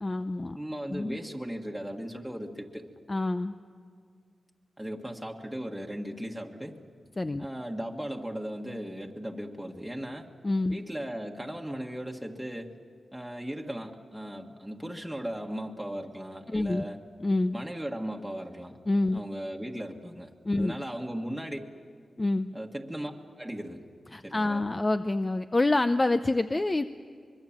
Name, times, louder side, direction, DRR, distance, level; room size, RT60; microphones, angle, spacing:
voice 1, 0.0-0.6 0.9-1.2 3.1-3.5 7.2-7.5 10.4-10.8 16.5-16.9 17.2-17.6 18.9-19.2 20.4-20.8 22.2-22.5 24.1-26.8, left 2 dB, 25° left, 10 dB, 0.6 m, -27 dB
voice 2, 0.5-2.9 4.8-6.8 7.4-10.3 10.7-12.7 13.1-17.0 17.5-18.8 19.1-20.3 20.6-21.6 22.5-23.1 23.4-23.8 24.2-24.6, equal, ahead, 0 dB, 1.7 m, -37 dB
25.0 x 22.5 x 7.4 m, 2.1 s
wide cardioid pair, 90°, 0 cm